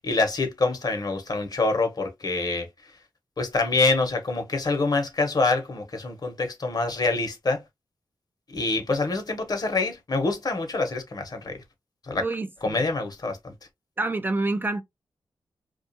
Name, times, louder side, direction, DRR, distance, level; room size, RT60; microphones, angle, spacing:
voice 1, 0.0-2.7 3.4-7.6 8.5-11.6 12.1-12.2 12.6-13.5, left 3 dB, 55° left, 0.9 m, -26 dB
voice 2, 12.2-12.8 14.0-14.8, right 2 dB, 25° right, 0.3 m, -27 dB
2.4 x 2.3 x 2.6 m
cardioid pair, 60°, 8 cm